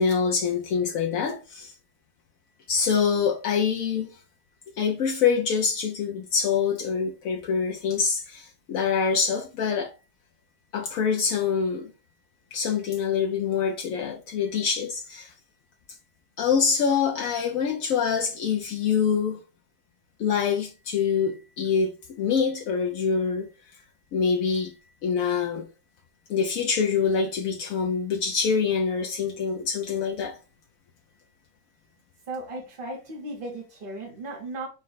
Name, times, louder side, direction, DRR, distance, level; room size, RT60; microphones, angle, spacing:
voice 1, 0.0-1.7 2.7-4.2 4.8-9.9 10.7-11.9 12.5-15.3 16.4-19.4 20.2-23.5 24.1-24.7 25.0-25.7 26.3-30.4, left 6 dB, 75° left, 0.8 m, -25 dB
voice 2, 32.3-34.7, right 2 dB, 45° right, 0.7 m, -36 dB
5.3 x 2.1 x 3.9 m
omnidirectional pair, 2.0 m